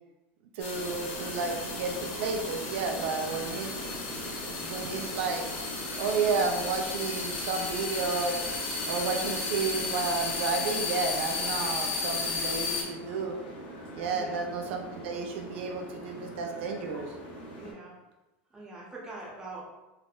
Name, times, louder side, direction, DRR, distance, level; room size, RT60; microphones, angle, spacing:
sound 1, 0.6-12.8, left 4 dB, 85° left, 0.6 m, -34 dB
voice 1, 0.6-3.8 4.5-5.4 6.0-8.4 8.9-13.4 13.9-17.1, right 4 dB, 75° right, 3 dB, 0.4 m, -32 dB
sound 2, 0.7-17.7, right 1 dB, 60° left, 1.0 m, -42 dB
voice 2, 14.1-14.4 17.6-17.9 18.5-19.7, right 2 dB, 10° right, -4 dB, 0.6 m, -43 dB
3.4 x 2.1 x 2.3 m, 1.0 s
supercardioid pair, 150°, 6 cm